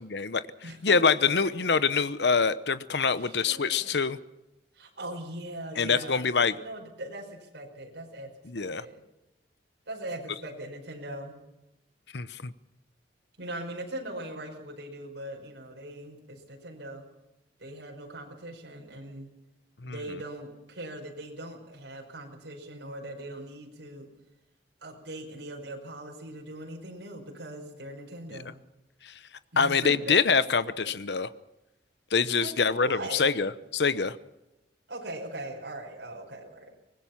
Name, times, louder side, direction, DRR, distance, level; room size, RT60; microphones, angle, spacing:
voice 1, 0.1-0.4 0.8-4.2 5.8-6.6 8.5-8.8 12.1-12.5 19.8-19.9 28.3-28.4 29.0-29.1 29.6-31.3 32.1-34.2, left 5 dB, 70° left, 14 dB, 0.9 m, -25 dB
voice 2, 0.6-1.0 3.2-3.9 4.7-6.3 6.6-9.0 9.9-11.3 13.4-17.1 17.6-19.3 19.8-24.1 24.8-28.6 29.5-30.4 32.4-33.3 34.9-36.8, right 1 dB, 90° right, 0 dB, 5.4 m, -40 dB
23.5 x 20.0 x 5.9 m, 0.94 s
head